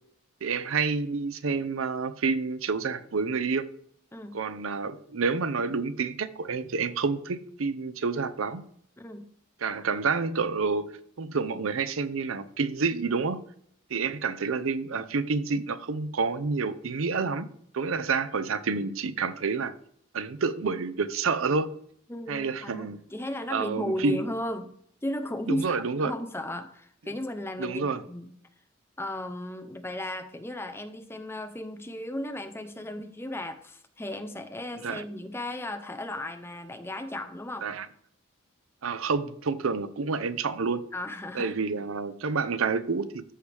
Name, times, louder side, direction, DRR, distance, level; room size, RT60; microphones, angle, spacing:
voice 1, 0.4-3.7 4.3-8.6 9.6-10.9 11.2-13.4 13.9-17.5 17.7-19.7 20.1-21.7 22.3-23.0 23.5-24.2 25.5-26.1 27.6-28.0 34.8-35.0 37.6-37.9 38.8-40.8 41.3-43.2, right 4 dB, 85° right, 0.6 m, -28 dB
voice 2, 9.0-9.3 22.1-24.7 25.0-28.3 29.0-37.7 40.9-41.6, left 1 dB, 10° left, 0.7 m, -35 dB
13.5 x 4.7 x 3.4 m
head